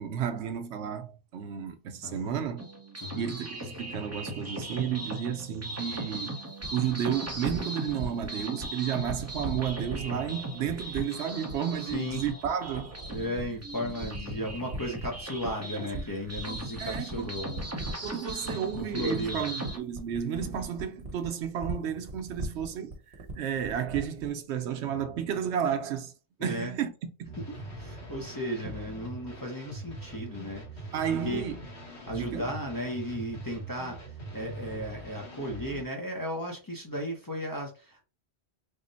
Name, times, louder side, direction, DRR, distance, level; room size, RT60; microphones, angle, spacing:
voice 1, 0.0-2.6 3.0-6.4 6.7-13.0 15.7-15.9 16.5-17.3 18.0-26.1 26.4-26.9 27.3-27.4 28.6-28.7 30.9-31.6 32.1-32.5, right 8 dB, 75° right, 0.9 m, -32 dB
voice 2, 2.0-2.3 3.0-3.3 11.8-12.3 13.1-17.7 18.4-19.5 26.4-26.7 27.7-30.9 31.2-31.5 32.1-38.0, equal, 20° left, 0.6 m, -35 dB
sound 1, 2.6-19.8, right 1 dB, 15° right, 0.6 m, -39 dB
sound 2, 6.6-24.4, right 2 dB, 60° right, 1.2 m, -39 dB
sound 3, 27.2-35.8, right 1 dB, 75° left, 1.4 m, -43 dB
3.6 x 2.1 x 3.9 m
omnidirectional pair, 1.2 m